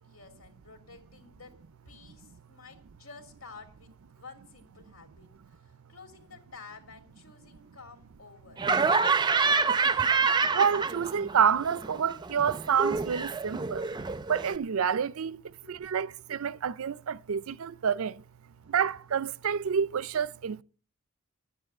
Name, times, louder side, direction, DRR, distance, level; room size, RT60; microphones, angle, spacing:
voice 1, 0.0-1.5 1.8-8.7 9.3-10.2 15.6-15.8, left 4 dB, 75° left, 2.6 m, -52 dB
Laughter, 8.6-11.4 11.6-14.6, right 4 dB, 20° right, 0.5 m, -27 dB
voice 2, 10.5-13.9 14.3-18.2 18.7-20.6, right 7 dB, 80° right, 0.5 m, -28 dB
10.5 x 8.9 x 7.8 m
head